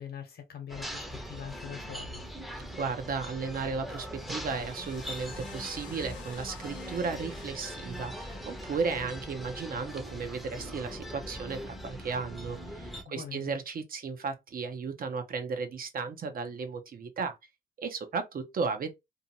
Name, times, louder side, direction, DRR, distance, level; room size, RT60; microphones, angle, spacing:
voice 1, 0.0-2.2 13.1-13.6, left 8 dB, 55° left, 1.0 m, -43 dB
sound 1, 0.7-13.0, equal, ahead, 0.7 m, -41 dB
voice 2, 2.7-17.4 17.8-18.9, right 5 dB, 45° right, 0.6 m, -35 dB
sound 2, 4.0-10.9, left 9 dB, 70° left, 0.6 m, -54 dB
2.7 x 2.1 x 2.7 m
cardioid pair, 90°, 20 cm